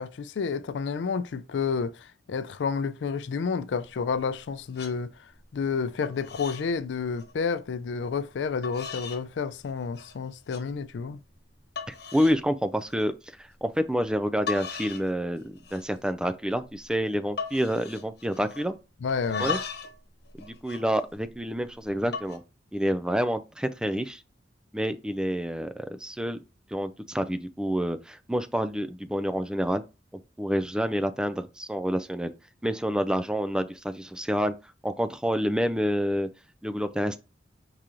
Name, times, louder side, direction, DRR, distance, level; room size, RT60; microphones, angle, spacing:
voice 1, 0.0-11.2 19.0-19.6, left 5 dB, 85° left, 0.4 m, -30 dB
sound 1, 4.1-4.4 4.7-4.9 5.4-5.8 6.0-6.7 7.0-7.3 8.0-8.1 8.6-9.2 9.6-10.1 10.5-10.6 11.2-11.3 11.8-12.4 12.8-13.1 14.1-14.2 14.5-15.1 15.4-16.0 16.3-16.4 16.6-16.9 17.4-18.7 19.1-20.0 20.3-21.5 22.0-22.4, left 5 dB, 65° left, 1.2 m, -37 dB
voice 2, 11.9-13.1 13.4-18.7 19.4-19.6 20.4-22.4 22.7-24.2 24.7-26.4 26.7-29.8 30.4-32.3 32.6-34.5 34.8-36.3 36.6-37.2, equal, 5° right, 0.3 m, -28 dB
4.8 x 2.9 x 3.7 m
head